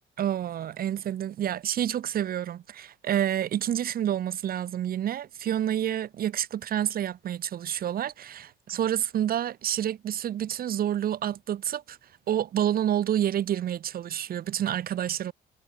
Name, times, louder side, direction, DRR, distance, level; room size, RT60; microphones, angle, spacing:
voice 1, 0.2-12.0 12.3-15.3, right 10 dB, 50° right, 0.5 m, -28 dB
cardioid pair, 90°, 20 cm